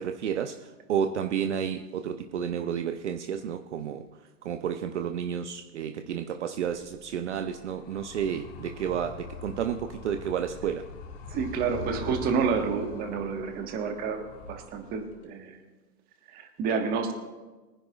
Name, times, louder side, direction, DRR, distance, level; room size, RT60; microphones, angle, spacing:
voice 1, 0.0-10.9, right 8 dB, 45° right, 7 dB, 0.8 m, -31 dB
Animal, 6.6-15.2, left 4 dB, 25° left, 1.8 m, -43 dB
voice 2, 11.3-15.6 16.3-17.1, right 6 dB, 20° right, 4 dB, 1.5 m, -29 dB
23.5 x 10.0 x 2.4 m, 1.2 s
hypercardioid pair, 145°, 49 cm